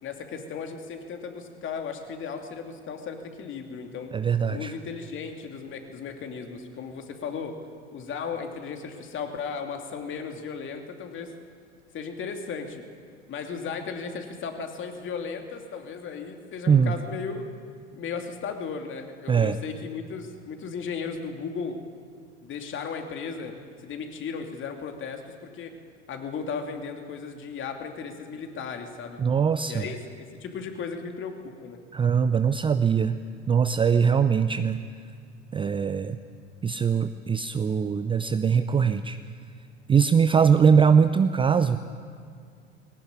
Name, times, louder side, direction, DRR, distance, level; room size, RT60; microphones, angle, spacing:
voice 1, 0.0-4.1 4.5-7.5 7.9-11.3 11.9-12.8 13.3-17.4 17.9-21.8 22.4-23.5 23.8-25.7 26.1-29.2 29.7-31.8, left 5 dB, 35° left, 4 dB, 2.8 m, -35 dB
voice 2, 4.1-4.7 16.7-16.9 19.3-19.6 29.2-29.9 31.9-33.2 33.5-34.8 35.5-36.2 36.6-39.2 39.9-41.8, right 6 dB, 15° right, 11 dB, 0.6 m, -21 dB
20.5 x 17.5 x 9.6 m, 2.1 s
figure-of-eight pair, 75°, 36 cm